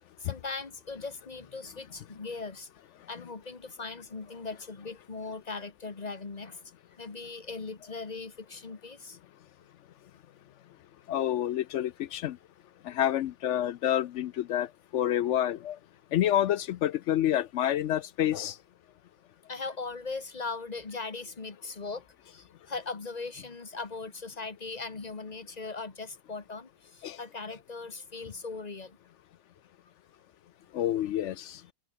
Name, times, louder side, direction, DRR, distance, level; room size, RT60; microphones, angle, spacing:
voice 1, 0.2-2.7 3.1-6.6 7.0-9.2 19.5-29.0, left 4 dB, 30° left, 1.4 m, -39 dB
voice 2, 11.1-12.4 12.8-14.7 14.9-15.8 16.1-18.6 27.0-27.2 30.7-31.6, left 11 dB, 65° left, 0.7 m, -28 dB
omnidirectional pair, 1.6 m